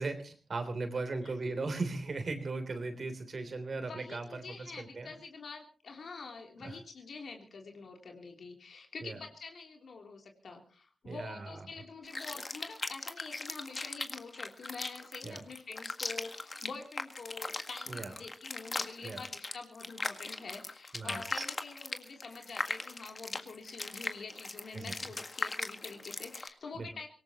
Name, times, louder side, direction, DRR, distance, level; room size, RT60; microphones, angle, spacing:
voice 1, 0.0-5.1 6.6-6.7 9.0-9.2 11.0-11.6 15.2-15.4 17.9-18.1 19.0-19.2 20.9-21.4 24.7-24.9 26.7-26.9, right 3 dB, 60° right, 8 dB, 3.4 m, -38 dB
voice 2, 3.8-27.1, left 4 dB, 75° left, 2 dB, 3.3 m, -46 dB
sound 1, 12.0-26.5, left 3 dB, 40° left, 1.7 m, -39 dB
24.5 x 18.5 x 3.0 m, 0.39 s
cardioid pair, 65°, 0 cm